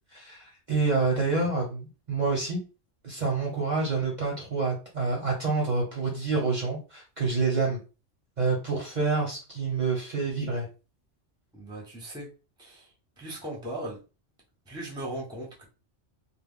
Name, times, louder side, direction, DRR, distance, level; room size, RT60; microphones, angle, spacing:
voice 1, 0.1-2.6 3.0-7.8 8.4-10.7, right 3 dB, 40° right, -2 dB, 0.8 m, -27 dB
voice 2, 11.5-12.3 12.6-12.9 13.2-14.0 14.7-15.6, right 1 dB, 5° right, -3 dB, 0.7 m, -38 dB
2.3 x 2.2 x 3.4 m, 0.32 s
omnidirectional pair, 1.3 m